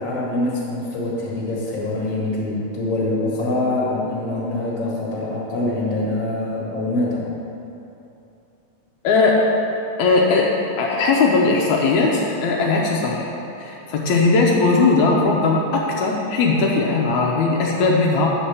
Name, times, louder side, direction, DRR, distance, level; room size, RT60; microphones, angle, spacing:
voice 1, 0.0-7.3, left 2 dB, 35° left, -5 dB, 1.7 m, -24 dB
voice 2, 9.0-9.4 10.0-10.5 10.8-13.3 13.6-18.3, left 3 dB, 80° left, -2 dB, 2.0 m, -18 dB
8.4 x 4.3 x 6.9 m, 2.8 s
omnidirectional pair, 3.4 m